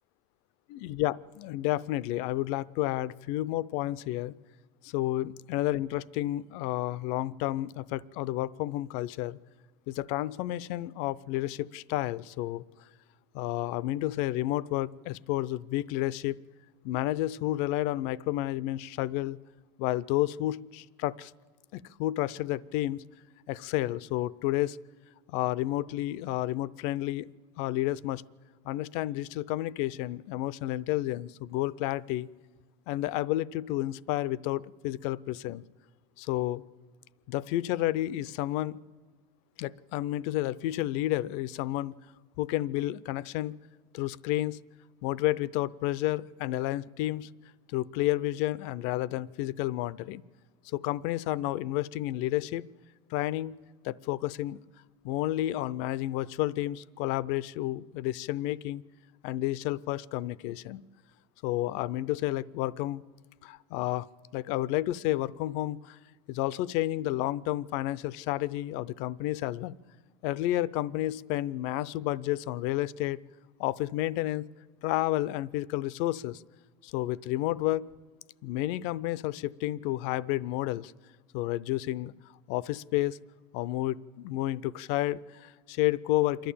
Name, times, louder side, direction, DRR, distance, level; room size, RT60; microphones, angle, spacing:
voice 1, 0.7-4.3 4.8-9.4 9.9-12.6 13.3-16.4 16.8-19.4 19.8-21.3 21.7-23.0 23.5-24.8 25.3-27.3 27.6-28.2 28.6-32.3 32.9-35.6 36.2-36.6 37.3-38.8 39.6-42.0 42.4-43.6 43.9-44.6 45.0-47.3 47.7-50.2 50.7-52.6 53.1-53.6 53.8-54.6 55.0-58.8 59.2-60.8 61.4-63.0 63.4-64.1 64.3-66.0 66.3-69.7 70.2-73.2 73.6-74.5 74.8-76.4 76.8-77.9 78.4-80.9 81.3-82.1 82.5-83.2 83.5-86.5, left 15 dB, 60° left, 19 dB, 0.5 m, -31 dB
27.5 x 11.5 x 8.6 m, 1.5 s
supercardioid pair, 145°, 13 cm